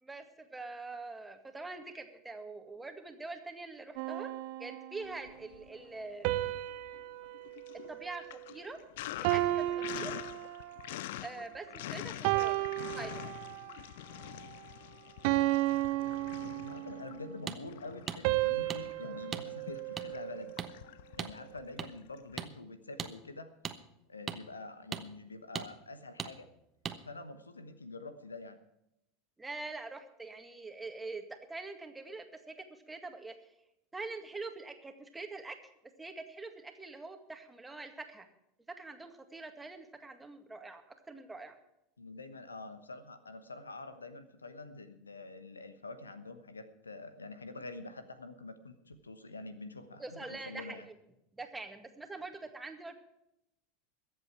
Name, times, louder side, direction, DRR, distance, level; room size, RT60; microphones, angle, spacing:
voice 1, 0.0-4.3 4.6-6.5 7.9-8.8 9.2-10.1 11.2-12.6 12.9-13.3 29.4-33.3 33.9-35.6 36.0-38.3 38.7-40.8 41.1-41.6 50.0-50.9 51.4-52.9, right 3 dB, 10° right, 6 dB, 2.0 m, -44 dB
sound 1, 4.0-5.3 6.2-8.8 9.2-11.0 11.5-11.8 12.2-13.8 14.3-14.5 15.2-17.1 18.2-20.6, right 17 dB, 55° right, 0.8 m, -34 dB
Sink (filling or washing), 5.1-6.0 6.4-22.5, left 14 dB, 60° left, 0.4 m, -46 dB
voice 2, 16.4-20.5 21.2-23.6 24.1-26.5 27.0-28.6 42.0-50.9, left 3 dB, 85° left, 12 dB, 1.1 m, -46 dB
sound 2, 17.5-17.6 18.1-18.2 18.7-18.8 19.3-19.4 20.0-20.1 20.6-20.7 21.2-21.3 21.8-21.9 22.4-22.5 23.0-23.1 23.6-23.8 24.3-24.4 24.9-25.0 25.5-25.7 26.2-26.3 26.8-27.0, right 7 dB, 25° right, 1.1 m, -38 dB
22.0 x 8.0 x 4.7 m, 0.85 s
figure-of-eight pair, 80°, 0 cm